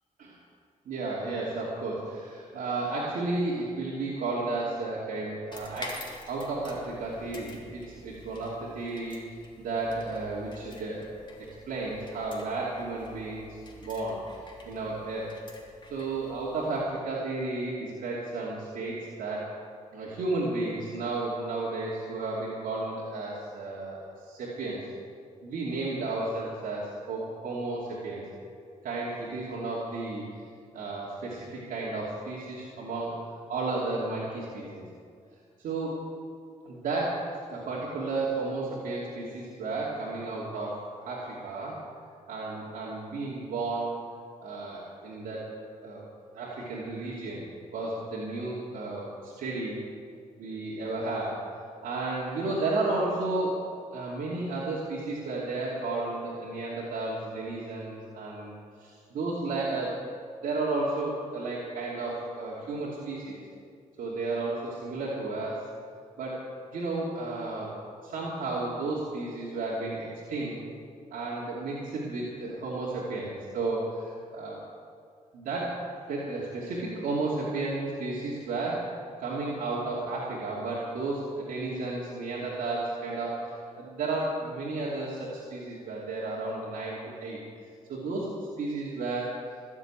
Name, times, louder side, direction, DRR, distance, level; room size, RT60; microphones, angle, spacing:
voice 1, 0.9-6.0 6.3-11.1 11.7-15.4 15.9-19.5 19.9-24.8 25.4-28.2 28.8-30.3 30.7-34.8 35.6-36.0 36.6-41.8 42.3-43.9 44.4-46.0 46.3-47.4 47.7-49.8 50.4-51.5 51.8-58.5 58.8-60.0 60.4-63.4 64.0-65.7 66.2-66.4 66.7-67.7 68.0-70.6 71.1-74.6 75.3-75.8 76.1-78.8 79.2-87.4 87.9-88.3 88.6-89.3, right 2 dB, 80° right, -6 dB, 2.8 m, -33 dB
sound 1, 5.5-16.8, left 2 dB, 35° left, 2.9 m, -48 dB
20.0 x 7.4 x 8.9 m, 2.3 s
cardioid pair, 80°, 14 cm